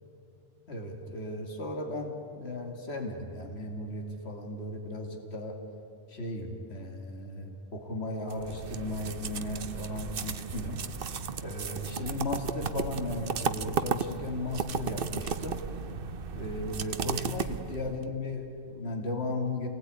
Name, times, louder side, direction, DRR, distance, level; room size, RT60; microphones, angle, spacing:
voice 1, 0.7-5.6 6.1-10.8 11.4-15.6 16.3-19.7, left 2 dB, 75° left, 3 dB, 2.6 m, -36 dB
sound 1, 8.3-18.0, right 6 dB, 60° right, 1.0 m, -35 dB
28.0 x 20.0 x 9.4 m, 2.7 s
omnidirectional pair, 1.1 m